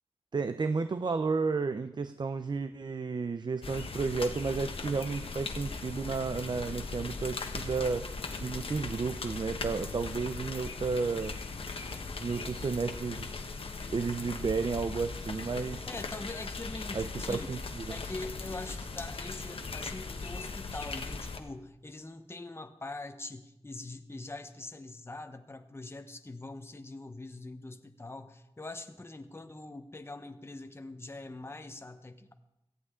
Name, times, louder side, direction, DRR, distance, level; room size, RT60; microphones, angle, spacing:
voice 1, 0.3-8.1 8.4-11.4 12.2-13.3 13.9-15.9 16.9-17.9, right 4 dB, 50° right, 10 dB, 0.6 m, -32 dB
sound 1, 3.6-21.4, left 4 dB, 70° left, 1.2 m, -39 dB
voice 2, 15.9-17.5 17.9-32.3, left 2 dB, 25° left, 8 dB, 1.0 m, -43 dB
17.5 x 13.5 x 3.8 m, 0.89 s
wide cardioid pair, 75°, 10 cm